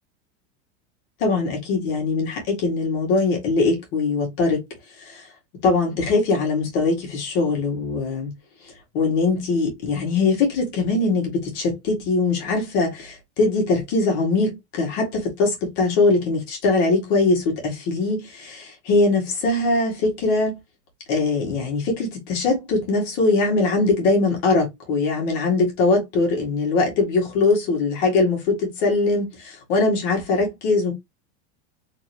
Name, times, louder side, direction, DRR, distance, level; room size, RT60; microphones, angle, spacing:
voice 1, 1.2-4.6 5.0-5.3 5.6-8.3 8.9-20.6 21.1-30.9, left 3 dB, 40° left, 1.7 m, -21 dB
3.7 x 2.9 x 3.3 m
supercardioid pair, 170°, 36 cm